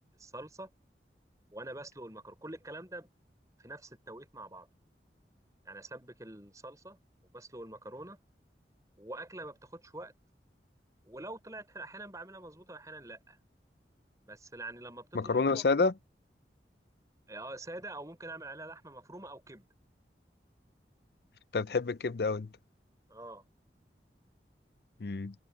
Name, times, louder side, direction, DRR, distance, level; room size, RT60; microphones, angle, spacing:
voice 1, 0.2-0.7 1.5-3.1 3.6-4.7 5.6-7.0 7.3-8.2 9.0-10.1 11.0-13.4 14.3-15.6 17.3-19.7 23.1-23.4, right 2 dB, 20° right, 5.2 m, -45 dB
voice 2, 15.1-15.9 21.5-22.5 25.0-25.3, left 4 dB, 65° left, 0.6 m, -28 dB
head